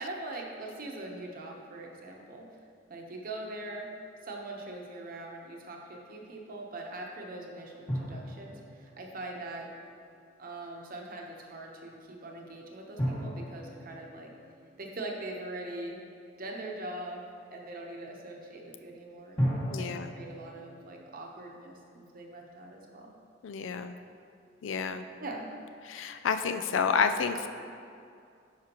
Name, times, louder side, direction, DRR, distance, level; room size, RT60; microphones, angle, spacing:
voice 1, 0.0-2.5 2.9-3.9 4.2-9.7 10.4-14.3 14.8-16.0 16.4-23.1 25.2-25.5, right 2 dB, 50° right, 0 dB, 0.9 m, -42 dB
sound 1, 7.9-10.1 13.0-15.9 19.4-21.3, equal, 25° left, 1.7 m, -36 dB
voice 2, 19.7-20.1 23.4-24.0 24.6-25.0 25.9-27.5, left 5 dB, 80° left, 9 dB, 0.4 m, -29 dB
10.5 x 5.0 x 3.0 m, 2.4 s
head